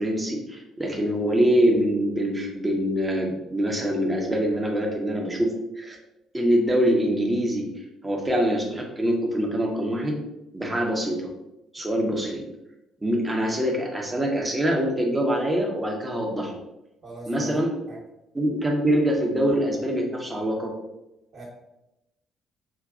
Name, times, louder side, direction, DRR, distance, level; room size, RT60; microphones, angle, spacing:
voice 1, 0.0-6.0 6.3-7.7 8.0-10.2 10.5-11.3 11.7-12.4 13.0-16.5 17.3-17.7 18.3-20.7, equal, 20° right, -1 dB, 1.0 m, -24 dB
voice 2, 17.0-17.6 17.9-18.0 21.3-21.4, right 2 dB, 45° right, -7 dB, 1.4 m, -39 dB
4.9 x 2.8 x 2.6 m, 0.92 s
figure-of-eight pair, 45°, 0 cm